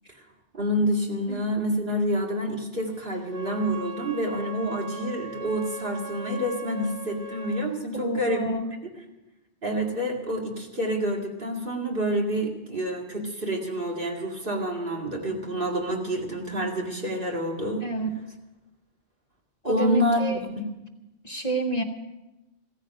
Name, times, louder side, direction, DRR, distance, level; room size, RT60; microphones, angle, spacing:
voice 1, 0.5-8.5 9.6-17.8 19.6-20.7, equal, 55° right, 0 dB, 2.4 m, -28 dB
Wind instrument woodwind instrument, 3.2-7.7, right 3 dB, 20° right, 0.6 m, -39 dB
voice 2, 7.9-8.8 17.8-18.1 19.6-20.4 21.2-21.8, right 1 dB, 40° left, 4 dB, 1.0 m, -29 dB
15.5 x 14.5 x 5.5 m, 1.0 s
omnidirectional pair, 1.1 m